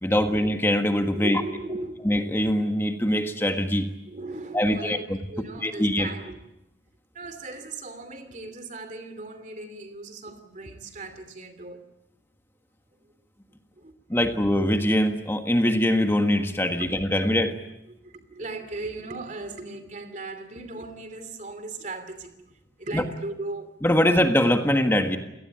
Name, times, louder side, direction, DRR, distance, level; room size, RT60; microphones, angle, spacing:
voice 1, 0.0-1.4 2.0-3.9 4.5-5.2 5.6-6.1 14.1-17.5 22.9-23.0 23.8-25.2, left 1 dB, 10° left, 6 dB, 1.5 m, -23 dB
voice 2, 1.2-2.0 4.1-6.4 7.1-11.8 13.8-14.2 16.8-17.1 17.9-23.7, right 2 dB, 40° right, 9 dB, 2.8 m, -38 dB
28.5 x 18.0 x 8.7 m, 0.87 s
head